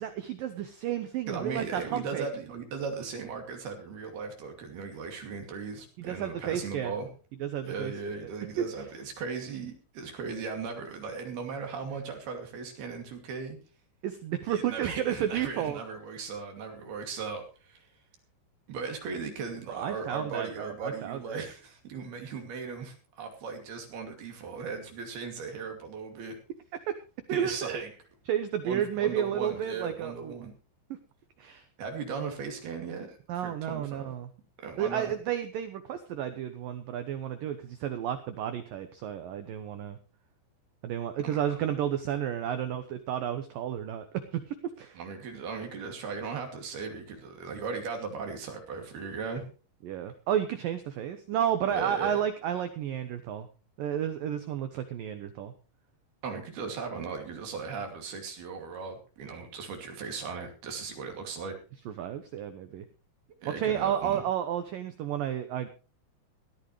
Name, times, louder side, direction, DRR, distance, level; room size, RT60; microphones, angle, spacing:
voice 1, 0.0-2.3 6.0-6.9 7.4-7.9 14.0-15.8 19.7-21.2 26.9-27.0 27.3-27.8 28.3-30.3 31.4-31.6 33.3-34.3 34.8-40.0 40.8-45.0 49.8-53.5 53.8-55.5 61.9-62.9 63.5-65.7, right 10 dB, 80° right, 9 dB, 2.0 m, -32 dB
voice 2, 1.3-7.1 7.7-13.6 14.5-17.9 18.7-26.4 27.3-27.9 28.6-30.5 31.8-34.1 34.6-35.1 41.2-41.4 44.9-49.5 51.7-52.2 56.2-61.6 63.4-64.2, right 5 dB, 60° right, 3 dB, 4.3 m, -37 dB
18.5 x 13.5 x 3.2 m, 0.34 s
omnidirectional pair, 5.4 m